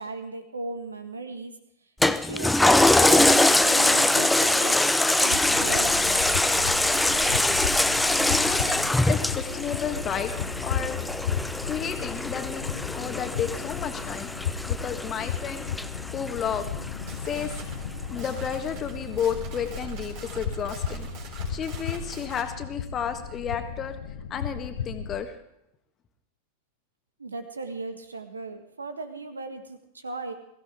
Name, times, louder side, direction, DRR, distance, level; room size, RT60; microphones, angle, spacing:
voice 1, 0.0-1.5 2.1-4.8 5.2-6.0 27.2-30.3, right 3 dB, 75° right, 7 dB, 1.8 m, -36 dB
Toilet flush, 2.0-16.8 17.3-17.4, left 1 dB, 5° left, 0.6 m, -23 dB
sound 1, 5.3-25.2, left 7 dB, 60° left, 1.1 m, -34 dB
voice 2, 7.9-10.3 10.6-14.3 14.6-17.7 18.1-24.0 24.3-25.4, left 8 dB, 25° left, 7 dB, 1.7 m, -33 dB
sound 2, 16.9-22.5, right 4 dB, 45° right, 4.1 m, -41 dB
22.0 x 15.5 x 3.7 m, 0.78 s
figure-of-eight pair, 90°, 0 cm